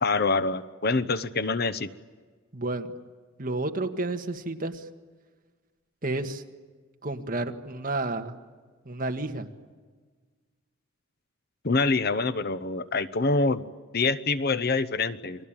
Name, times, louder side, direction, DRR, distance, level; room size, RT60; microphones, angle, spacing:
voice 1, 0.0-1.9 11.6-13.6 13.9-15.4, left 3 dB, 50° left, 13 dB, 0.9 m, -25 dB
voice 2, 2.5-2.9 3.4-4.9 6.0-6.4 7.0-8.4 8.9-9.5, right 2 dB, 40° right, 5 dB, 1.7 m, -31 dB
29.5 x 21.5 x 8.9 m, 1.5 s
head